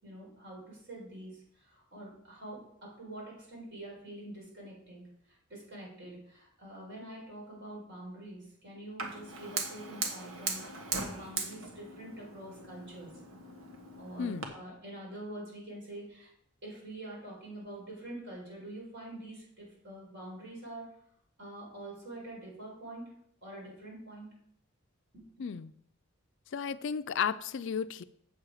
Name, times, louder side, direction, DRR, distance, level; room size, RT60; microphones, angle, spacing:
voice 1, 0.0-13.1 14.0-16.3 16.6-21.0 21.4-23.1 23.4-24.4 25.1-25.5, right 1 dB, 55° right, -3 dB, 4.4 m, -46 dB
Fire, 9.0-14.5, right 4 dB, 70° right, 1.4 m, -39 dB
voice 2, 14.2-14.5 25.4-25.7 26.5-28.0, left 7 dB, 60° left, 14 dB, 0.4 m, -33 dB
7.9 x 7.5 x 4.9 m, 0.71 s
head